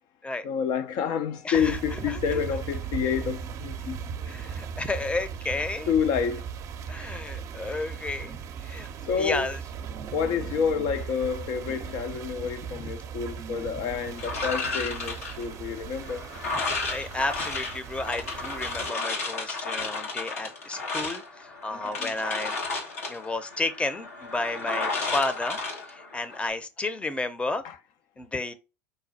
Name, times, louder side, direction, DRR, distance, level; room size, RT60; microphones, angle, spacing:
voice 1, 0.4-4.0 5.9-6.4 9.1-9.5 10.1-16.3 21.7-22.1 27.6-27.8, left 7 dB, 55° left, 0.5 m, -29 dB
voice 2, 1.4-2.4 4.3-5.9 6.9-8.9 9.2-9.6 12.8-12.9 16.6-22.5 23.1-25.6 25.9-27.6 28.2-28.5, left 2 dB, 15° left, 0.7 m, -32 dB
sound 1, 1.5-18.9, right 7 dB, 45° right, 0.6 m, -38 dB
sound 2, 14.2-26.5, left 3 dB, 90° left, 1.3 m, -33 dB
5.2 x 2.2 x 4.0 m
hypercardioid pair, 85°, 8 cm